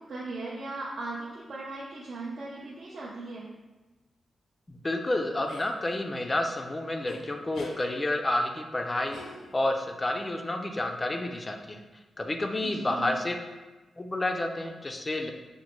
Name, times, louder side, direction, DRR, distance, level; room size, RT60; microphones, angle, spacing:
voice 1, 0.0-3.5 12.6-13.1, right 2 dB, 55° right, -6 dB, 0.5 m, -38 dB
voice 2, 4.7-9.2 9.5-11.8 12.2-13.4 14.0-15.3, left 1 dB, 20° left, 4 dB, 0.3 m, -30 dB
sound 1, 5.5-5.7 7.1-7.2 7.5-7.8 9.1-9.8, left 3 dB, 80° left, 0.5 m, -43 dB
5.0 x 2.1 x 3.0 m, 1.2 s
wide cardioid pair, 135°, 0 cm